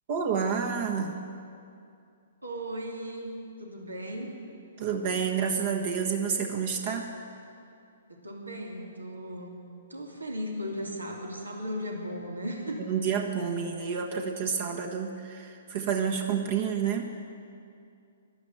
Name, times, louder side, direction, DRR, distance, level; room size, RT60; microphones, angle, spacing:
voice 1, 0.1-1.1 4.8-7.0 12.8-17.1, right 6 dB, 45° right, 2 dB, 1.4 m, -29 dB
voice 2, 2.4-3.3 3.6-4.4 8.1-9.5 9.9-12.9, equal, 90° right, 0 dB, 2.7 m, -36 dB
13.0 x 12.0 x 9.0 m, 2.5 s
figure-of-eight pair, 125°, 0 cm